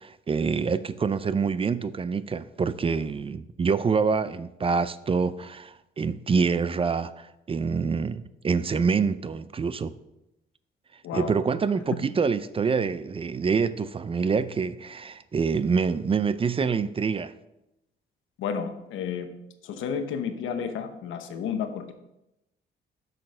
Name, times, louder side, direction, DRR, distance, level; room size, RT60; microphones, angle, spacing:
voice 1, 0.0-9.9 11.1-17.3, right 5 dB, 30° right, 0.4 m, -26 dB
voice 2, 11.0-11.4 18.4-19.3 19.6-21.9, left 7 dB, 85° left, 0.9 m, -31 dB
6.6 x 6.4 x 5.6 m
cardioid pair, 90°, 20 cm